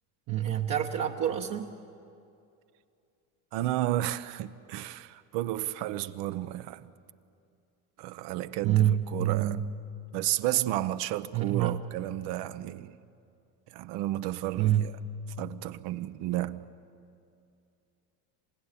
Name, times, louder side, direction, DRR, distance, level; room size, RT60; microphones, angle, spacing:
voice 1, 0.3-1.7 8.6-9.7 11.3-11.8 14.6-14.9, right 11 dB, 45° right, 1.2 m, -27 dB
voice 2, 3.5-6.9 8.0-9.6 10.1-13.0 13.7-14.9 15.4-16.7, right 14 dB, 65° right, 1.0 m, -32 dB
28.0 x 16.0 x 10.0 m
supercardioid pair, 125°, 46 cm